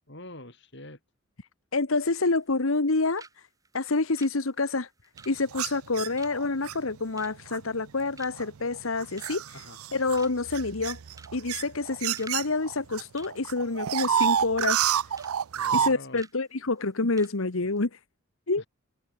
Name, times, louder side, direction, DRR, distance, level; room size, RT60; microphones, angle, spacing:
voice 1, 0.1-1.0 9.5-9.8 15.5-16.2 18.6-18.7, left 1 dB, 55° left, 5.8 m, -44 dB
voice 2, 1.7-3.5 3.7-4.9 5.2-9.7 9.9-11.0 11.3-14.9 15.7-18.0 18.5-18.6, left 3 dB, 75° left, 1.3 m, -27 dB
sound 1, 2.3-2.9 3.2-3.4 3.6-7.9 8.2-8.6 8.9-9.5 9.9-10.0 10.2-10.6 11.1-11.4 11.7-12.4 12.7-12.8 13.2-14.4 14.8-15.3 15.6-15.8 16.2-16.4 16.8-16.9 17.2-17.4 17.6-17.8, right 4 dB, 15° right, 3.0 m, -50 dB
sound 2, 5.5-6.8 7.5-7.8 8.4-13.0 13.3-15.9, right 9 dB, 90° right, 0.5 m, -28 dB
head